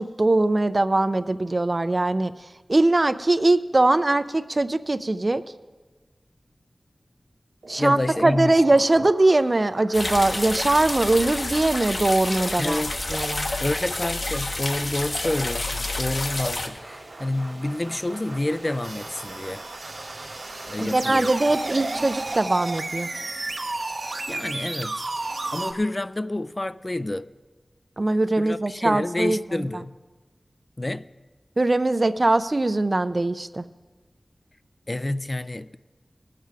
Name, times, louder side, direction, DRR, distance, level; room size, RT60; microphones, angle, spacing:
voice 1, 0.0-2.3 2.7-5.4 7.7-12.8 13.1-13.5 20.8-23.1 28.0-29.6 31.6-33.6, right 2 dB, 45° right, 0.5 m, -21 dB
sound 1, 7.6-22.4, right 2 dB, 90° right, 1.4 m, -43 dB
voice 2, 7.8-8.6 9.0-9.1 12.6-12.9 13.6-19.6 20.7-21.3 24.3-27.3 28.4-30.0 30.8-31.1 34.9-35.8, left 1 dB, 30° left, 0.3 m, -28 dB
sound 2, 9.9-16.7, left 2 dB, 65° left, 1.2 m, -29 dB
sound 3, 18.8-25.7, right 2 dB, 65° right, 1.0 m, -32 dB
19.5 x 7.5 x 4.8 m
wide cardioid pair, 70°, 0 cm